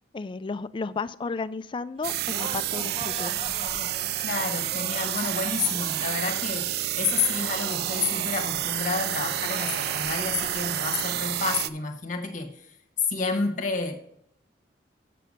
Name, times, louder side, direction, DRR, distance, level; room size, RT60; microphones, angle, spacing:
voice 1, 0.1-3.4, left 4 dB, 30° left, 14 dB, 0.4 m, -33 dB
Laughter, 2.0-11.2, right 1 dB, 35° right, 1.0 m, -41 dB
sound 1, 2.0-11.7, right 13 dB, 60° right, 0.4 m, -29 dB
voice 2, 4.2-12.8 13.1-14.0, left 4 dB, 45° left, 4 dB, 1.2 m, -30 dB
7.5 x 6.9 x 5.2 m, 0.70 s
head